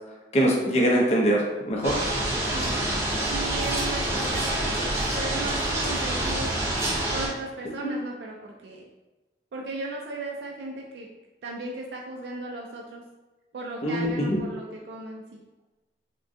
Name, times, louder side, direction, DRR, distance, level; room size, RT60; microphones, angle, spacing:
voice 1, 0.3-2.0 7.8-7.9 13.8-14.4, equal, 40° left, -2 dB, 0.6 m, -23 dB
sound 1, 1.8-7.3, right 1 dB, 15° right, 0.5 m, -27 dB
voice 2, 3.3-4.9 5.1-6.5 7.1-8.8 9.5-11.1 11.4-13.0 13.5-15.4, right 2 dB, 70° right, -1 dB, 0.3 m, -36 dB
3.6 x 2.2 x 2.5 m, 1.1 s
head